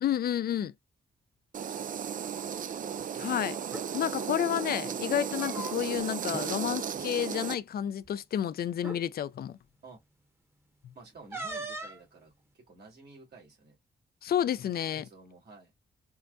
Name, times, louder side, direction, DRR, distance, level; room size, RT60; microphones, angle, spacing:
voice 1, 0.0-0.7 3.1-3.6 3.9-9.6 14.2-15.0, left 10 dB, 60° left, 0.4 m, -30 dB
sound 1, 1.5-7.6, right 8 dB, 50° right, 0.4 m, -35 dB
voice 2, 1.7-3.1 3.8-4.1 9.8-10.0 10.9-13.8 14.9-15.7, right 3 dB, 70° right, 2.3 m, -53 dB
sound 2, 3.6-3.9 5.1-6.0 6.3-6.5 6.8-7.1 8.0-8.1 8.8-9.0 11.3-12.0, right 1 dB, 15° right, 1.0 m, -39 dB
4.6 x 2.1 x 2.5 m
supercardioid pair, 50°, 18 cm